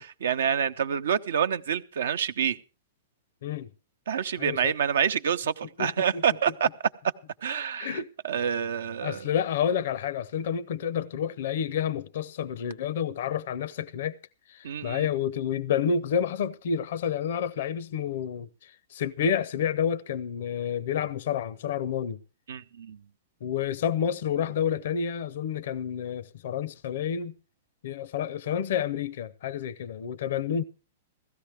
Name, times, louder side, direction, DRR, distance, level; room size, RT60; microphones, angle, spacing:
voice 1, 0.0-2.6 4.1-6.7 7.4-9.3 14.6-15.1 22.5-23.0, right 8 dB, 70° right, 0.6 m, -27 dB
voice 2, 4.4-4.7 5.8-6.2 7.8-8.1 9.0-14.2 14.5-22.2 23.4-27.4 27.8-30.6, left 8 dB, 65° left, 0.6 m, -29 dB
16.5 x 13.0 x 3.4 m
hypercardioid pair, 115°, 0 cm